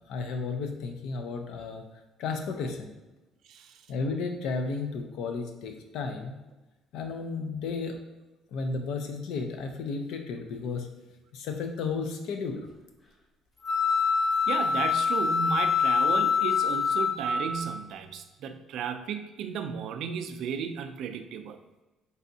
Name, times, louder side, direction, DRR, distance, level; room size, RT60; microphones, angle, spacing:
voice 1, 0.1-1.8 2.2-2.9 3.9-6.4 6.9-8.0 8.5-10.9 11.3-12.7, left 4 dB, 70° left, 5 dB, 0.5 m, -33 dB
sound 1, 13.6-17.7, left 5 dB, 25° left, 0.5 m, -25 dB
voice 2, 14.5-21.6, right 7 dB, 65° right, 8 dB, 0.3 m, -34 dB
4.0 x 3.4 x 2.7 m, 1.1 s
cardioid pair, 150°, 0 cm